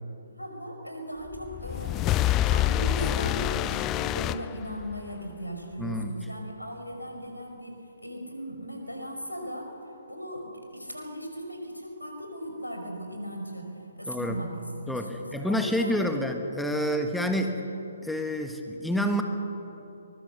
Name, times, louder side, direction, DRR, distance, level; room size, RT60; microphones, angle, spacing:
voice 1, 0.4-9.7 10.1-13.7 14.0-16.2 16.8-16.9, equal, 90° left, 3 dB, 5.3 m, -38 dB
sound 1, 1.3-5.1, left 13 dB, 20° left, 0.4 m, -27 dB
voice 2, 5.8-6.1 14.1-14.4 14.9-17.6 18.0-19.2, equal, ahead, 5 dB, 1.4 m, -28 dB
23.5 x 21.5 x 6.9 m, 2.9 s
figure-of-eight pair, 135°, 0 cm